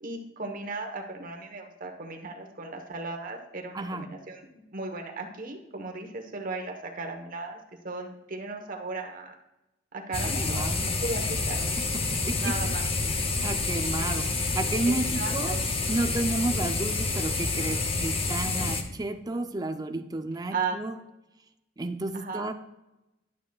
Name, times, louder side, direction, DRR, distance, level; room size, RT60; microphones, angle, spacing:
voice 1, 0.0-7.6 7.8-9.3 9.9-10.7 11.0-11.6 12.4-12.9 14.8-15.6 18.4-18.7 20.5-20.8 22.1-22.5, right 3 dB, 45° right, 3 dB, 1.1 m, -36 dB
voice 2, 3.7-4.1 10.4-10.8 12.1-12.5 13.4-15.6 15.9-21.0 21.8-22.5, right 2 dB, 20° right, 8 dB, 0.5 m, -31 dB
sound 1, 10.1-18.8, left 3 dB, 30° left, 0.7 m, -28 dB
11.0 x 7.4 x 2.3 m, 0.93 s
head